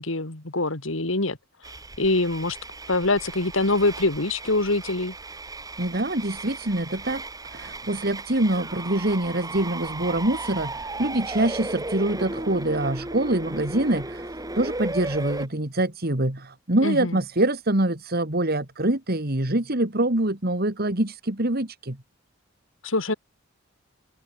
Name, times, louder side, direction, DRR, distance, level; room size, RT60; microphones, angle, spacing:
voice 1, 0.0-1.4 2.0-2.6 2.9-5.1 16.8-17.2 22.8-23.1, left 2 dB, 70° left, 2.5 m, -24 dB
sound 1, 1.6-15.5, right 2 dB, 20° right, 3.9 m, -35 dB
voice 2, 5.8-7.2 7.5-14.3 14.6-22.0, right 1 dB, 50° right, 2.6 m, -25 dB
head